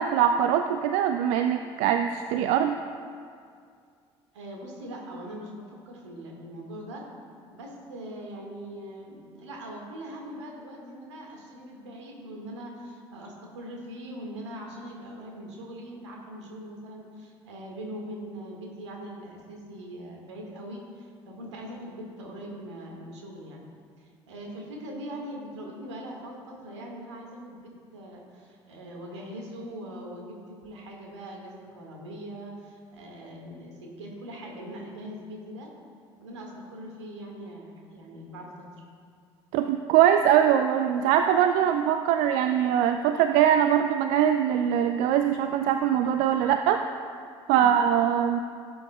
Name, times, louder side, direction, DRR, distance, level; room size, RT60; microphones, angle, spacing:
voice 1, 0.0-2.8 39.5-46.8 47.5-48.4, right 9 dB, 55° right, 7 dB, 0.4 m, -22 dB
voice 2, 4.3-7.0 7.5-23.7 24.0-35.7 36.2-38.7 47.5-47.8, equal, 75° right, 0 dB, 1.7 m, -41 dB
16.5 x 7.8 x 2.2 m, 2.2 s
figure-of-eight pair, 55°, 15 cm